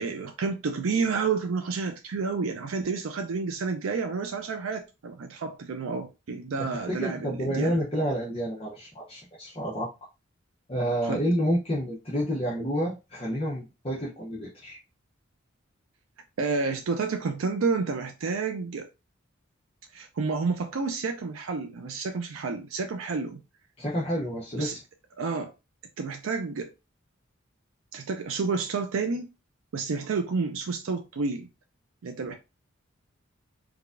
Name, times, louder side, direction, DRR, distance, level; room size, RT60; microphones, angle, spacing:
voice 1, 0.0-7.8 11.0-11.2 16.4-18.9 19.9-23.4 24.6-24.7 25.2-25.5 26.0-26.7 27.9-29.3 29.7-31.5 32.0-32.3, right 4 dB, 85° right, 0.4 m, -30 dB
voice 2, 6.6-9.9 10.7-14.8 23.8-24.8, equal, 30° left, 0.8 m, -29 dB
4.7 x 2.3 x 2.4 m
head